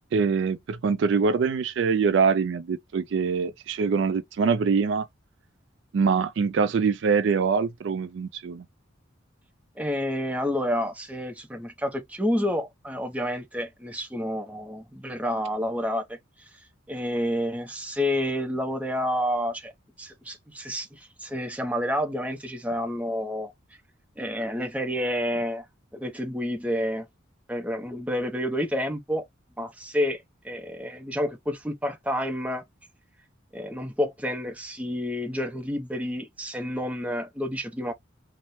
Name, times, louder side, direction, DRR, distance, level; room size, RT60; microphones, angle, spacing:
voice 1, 0.1-5.1 5.9-8.6, right 5 dB, 65° right, 0.3 m, -24 dB
voice 2, 9.8-16.5 16.9-19.7 20.0-23.5 24.2-25.7 25.9-27.1 27.5-29.2 29.6-32.6 33.5-37.9, equal, 5° right, 0.6 m, -29 dB
4.2 x 2.0 x 3.0 m
head